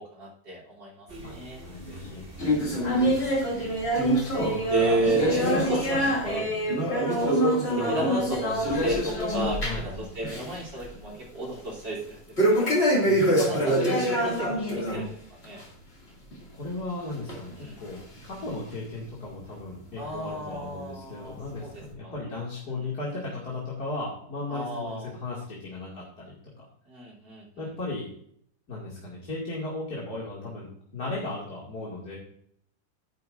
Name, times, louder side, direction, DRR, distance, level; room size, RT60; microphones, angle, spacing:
voice 1, 0.0-1.6 2.4-2.6 4.7-6.5 7.1-7.4 7.7-12.2 12.5-12.7 13.2-15.2 15.4-15.6 17.5-17.8 20.0-21.7 22.0-22.1 24.5-25.1 26.9-27.4, right 1 dB, 80° right, -4 dB, 4.1 m, -33 dB
sound 1, 1.1-6.4, equal, 30° right, 2.7 m, -41 dB
voice 2, 1.2-2.2 2.6-3.4 9.6-10.1 13.0-13.5 16.5-26.6 27.6-28.1 28.7-30.7 30.9-32.2, left 2 dB, 60° left, -5 dB, 2.9 m, -36 dB
sound 2, 2.4-9.9 10.2-10.6 10.9-11.0 12.4-15.0 15.4-15.6 16.3-16.4 17.3-17.4 18.2-18.3, equal, 35° left, 2.8 m, -25 dB
12.0 x 10.5 x 2.6 m, 0.66 s
omnidirectional pair, 1.9 m